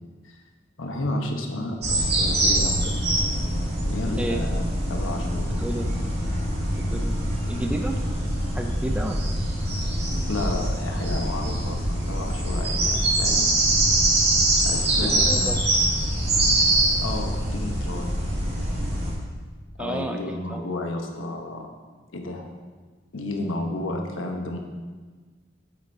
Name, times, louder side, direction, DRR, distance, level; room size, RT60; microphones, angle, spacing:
voice 1, 0.8-2.9 3.8-5.6 10.3-13.5 14.6-15.6 17.0-18.1 19.8-21.7 22.1-22.5 23.1-24.6, left 2 dB, 85° left, 3 dB, 1.0 m, -31 dB
sound 1, 1.8-19.1, right 1 dB, 55° right, 2.3 m, -24 dB
voice 2, 5.4-5.9 6.7-7.2 7.5-8.0 8.5-9.3 15.0-15.6 19.8-20.7, right 1 dB, 5° right, 4 dB, 0.4 m, -31 dB
8.9 x 7.9 x 2.7 m, 1.4 s
head